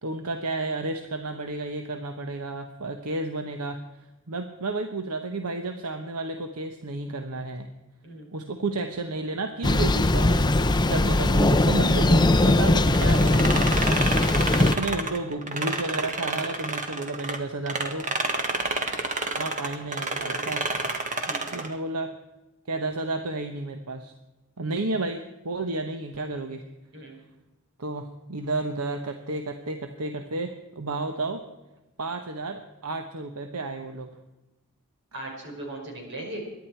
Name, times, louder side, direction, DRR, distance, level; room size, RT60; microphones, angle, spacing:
voice 1, 0.0-3.8 4.3-7.7 8.3-13.7 14.6-18.1 19.4-20.7 21.5-22.1 22.7-24.1 24.6-26.6 27.8-31.4 32.0-34.1, right 2 dB, 80° right, 6 dB, 1.1 m, -32 dB
Thunder, 9.6-14.8, left 2 dB, 20° left, 0.6 m, -20 dB
sound 1, 12.9-17.4 17.7-21.7, right 3 dB, 35° right, 1.6 m, -29 dB
voice 2, 35.1-36.4, right 1 dB, 55° right, 0 dB, 5.2 m, -38 dB
23.0 x 11.0 x 4.5 m, 1.0 s
head